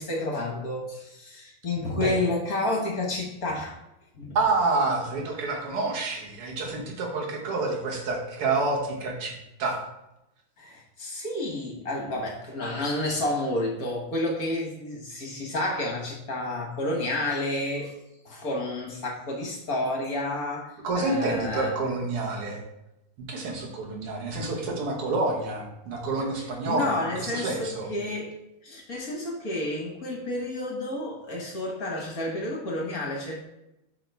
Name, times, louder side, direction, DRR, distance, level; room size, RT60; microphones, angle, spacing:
voice 1, 0.0-3.8 4.2-4.4 10.6-18.0 18.2-21.7 26.6-28.4 28.6-33.4, left 2 dB, 45° left, -1 dB, 1.5 m, -30 dB
voice 2, 4.4-9.3 9.6-9.8 20.8-22.6 23.3-27.9, right 3 dB, 85° right, -1 dB, 2.3 m, -28 dB
8.5 x 4.8 x 3.4 m, 0.88 s
omnidirectional pair, 2.4 m